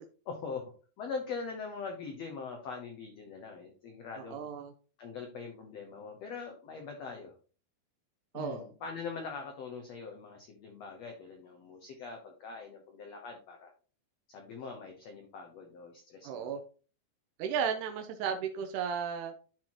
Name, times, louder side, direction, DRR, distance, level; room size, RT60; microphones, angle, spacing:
voice 1, 0.2-0.6 1.0-4.4 5.0-7.3 8.3-13.7 14.3-16.5, left 5 dB, 85° left, 3 dB, 1.4 m, -42 dB
voice 2, 4.2-4.7 8.3-8.7 16.2-16.6 17.4-19.3, right 7 dB, 80° right, 5 dB, 1.8 m, -34 dB
12.0 x 4.5 x 3.0 m, 0.37 s
omnidirectional pair, 4.4 m